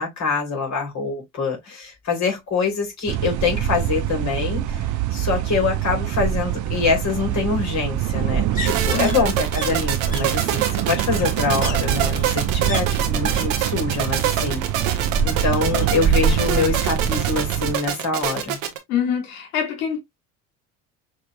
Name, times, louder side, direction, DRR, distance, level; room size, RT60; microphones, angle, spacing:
voice 1, 0.0-14.6 15.2-18.6, left 4 dB, 45° left, 3.6 m, -25 dB
sound 1, 2.6-2.7 3.0-3.1 3.4-4.4 5.7-13.5 13.7-14.3 14.6-15.6 15.9-16.0, left 4 dB, 20° left, 2.0 m, -39 dB
sound 2, 3.1-17.8, right 9 dB, 50° right, 0.6 m, -24 dB
sound 3, 8.7-18.8, right 10 dB, 75° right, 1.3 m, -25 dB
voice 2, 8.9-9.3 18.9-20.0, left 8 dB, 75° left, 1.7 m, -25 dB
6.3 x 3.2 x 2.4 m
hypercardioid pair, 60°, 40 cm